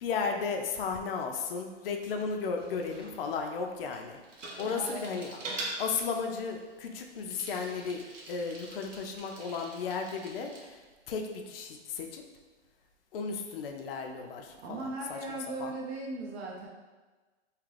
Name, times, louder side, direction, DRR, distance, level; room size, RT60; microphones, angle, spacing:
voice 1, 0.0-4.2 4.6-5.4 5.8-8.0 8.3-10.8 11.1-12.2 13.1-15.2 15.6-15.7, left 5 dB, 55° left, 3 dB, 0.4 m, -34 dB
Bicycle, 2.3-10.7, right 2 dB, 90° right, 0.9 m, -44 dB
voice 2, 4.6-5.2 14.6-16.7, right 3 dB, 65° right, -2 dB, 0.6 m, -38 dB
2.8 x 2.5 x 3.2 m, 1.3 s
hypercardioid pair, 160°, 36 cm